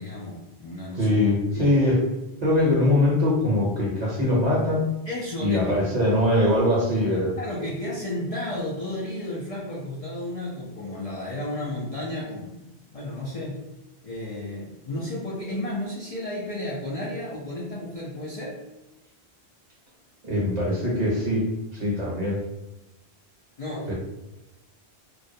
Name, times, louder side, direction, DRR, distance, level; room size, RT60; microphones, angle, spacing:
voice 1, 0.0-1.1 1.5-1.8 4.2-4.4 5.1-5.8 7.4-12.6 12.9-13.6 14.0-18.6 23.6-23.9, left 1 dB, 60° left, -4 dB, 0.4 m, -33 dB
voice 2, 1.0-2.1 2.4-4.9 5.4-7.3 20.2-21.5 21.7-22.4 23.9-24.0, left 1 dB, 45° right, -4 dB, 0.7 m, -22 dB
2.3 x 2.1 x 2.6 m, 0.95 s
omnidirectional pair, 1.1 m